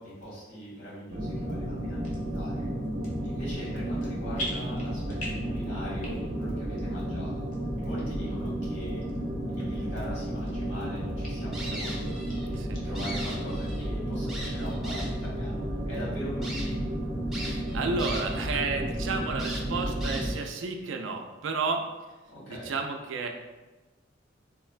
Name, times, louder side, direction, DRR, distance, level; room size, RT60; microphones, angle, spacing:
voice 1, 0.0-2.7 3.2-7.5 7.8-9.0 9.5-12.5 12.8-16.8 22.3-22.7, equal, 80° left, -8 dB, 1.5 m, -41 dB
sound 1, 1.1-20.3, right 1 dB, 50° right, 0.7 m, -32 dB
sound 2, 2.0-2.2 2.8-3.3 3.6-4.1 4.3-5.5 5.9-6.4 6.8-6.9 7.5-7.6 8.3-8.4 9.1-9.2 9.6-9.7 10.2-10.8 11.2-11.3 11.8-11.9 12.1-12.8 13.2-13.3 13.7-13.8 14.1-14.6 15.0-15.1, equal, 45° left, 0.7 m, -40 dB
sound 3, 11.5-12.5 12.8-13.9 14.3-15.3 15.9-16.0 16.4-16.7 17.3-18.5 18.8-18.9 19.4-20.5, right 1 dB, ahead, 0.5 m, -39 dB
voice 2, 17.4-21.9 22.5-23.3, right 4 dB, 85° right, 4 dB, 0.4 m, -32 dB
3.7 x 2.1 x 2.4 m, 1.2 s
head